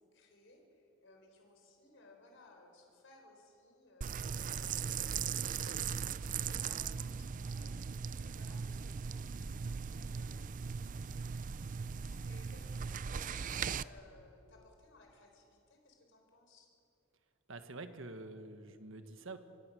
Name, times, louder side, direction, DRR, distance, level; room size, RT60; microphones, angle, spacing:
voice 1, 0.0-7.7 8.2-10.6 11.9-16.7, left 2 dB, 60° left, 2 dB, 4.2 m, -62 dB
sound 1, 4.0-13.8, right 6 dB, 40° right, 0.4 m, -39 dB
voice 2, 17.5-19.4, right 2 dB, 65° right, 9 dB, 1.5 m, -47 dB
23.5 x 23.5 x 6.4 m, 2.8 s
head